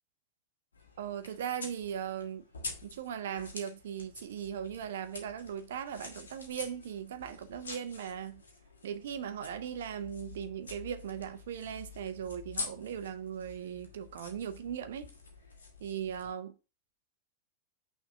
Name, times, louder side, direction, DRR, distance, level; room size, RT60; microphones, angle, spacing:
sound 1, 0.7-16.3, left 3 dB, 70° left, 1.5 m, -47 dB
voice 1, 1.0-2.4 2.8-8.4 8.8-15.1 15.8-16.5, right 9 dB, 60° right, 0.7 m, -38 dB
6.1 x 3.6 x 4.8 m
figure-of-eight pair, 90°, 0 cm